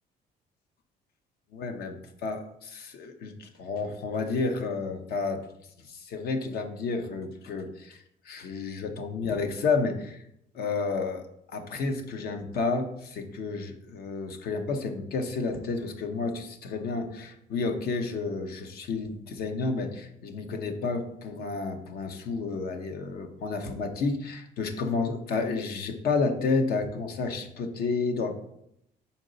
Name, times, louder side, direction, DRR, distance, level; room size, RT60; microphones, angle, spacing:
voice 1, 1.5-2.0 2.2-5.5 5.8-10.2 10.5-11.2 11.5-28.4, left 4 dB, 65° left, 6 dB, 0.9 m, -31 dB
5.4 x 4.5 x 4.0 m, 0.76 s
cardioid pair, 110°, 17 cm